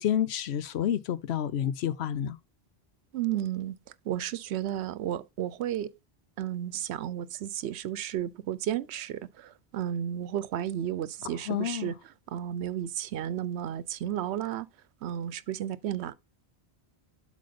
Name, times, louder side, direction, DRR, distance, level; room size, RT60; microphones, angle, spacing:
voice 1, 0.0-2.4 11.5-12.0, left 10 dB, 80° left, 0.9 m, -29 dB
voice 2, 3.1-3.8 4.0-5.9 6.4-11.9 12.3-14.7 15.0-16.1, right 11 dB, 85° right, 0.9 m, -33 dB
7.7 x 3.4 x 5.1 m
omnidirectional pair, 1.1 m